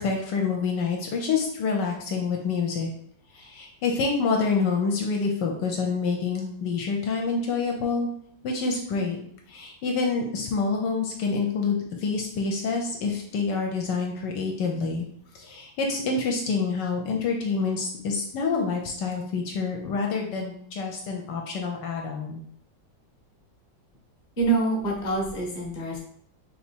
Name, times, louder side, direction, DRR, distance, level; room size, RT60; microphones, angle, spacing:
voice 1, 0.0-2.9 3.3-8.1 8.4-9.2 9.5-15.1 15.3-22.4, left 4 dB, 70° left, 1 dB, 1.2 m, -27 dB
voice 2, 24.4-26.0, right 3 dB, 35° left, -1 dB, 0.9 m, -26 dB
3.4 x 2.9 x 4.3 m, 0.65 s
omnidirectional pair, 2.1 m